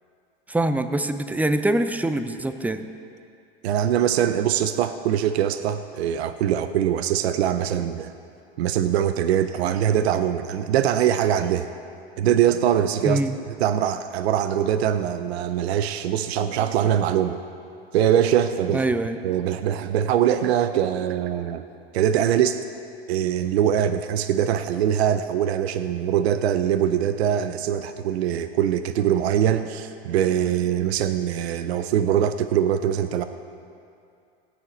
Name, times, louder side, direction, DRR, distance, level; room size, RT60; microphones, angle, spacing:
voice 1, 0.5-2.9 13.0-13.3 18.7-19.2, right 1 dB, 5° right, 10 dB, 0.5 m, -24 dB
voice 2, 3.6-8.1 8.6-11.7 12.2-13.2 13.6-17.4 17.9-18.8 19.2-21.6 21.9-22.6 23.1-33.2, right 10 dB, 80° right, 11 dB, 0.6 m, -22 dB
16.5 x 9.6 x 3.9 m, 2.5 s
hypercardioid pair, 90°, 32 cm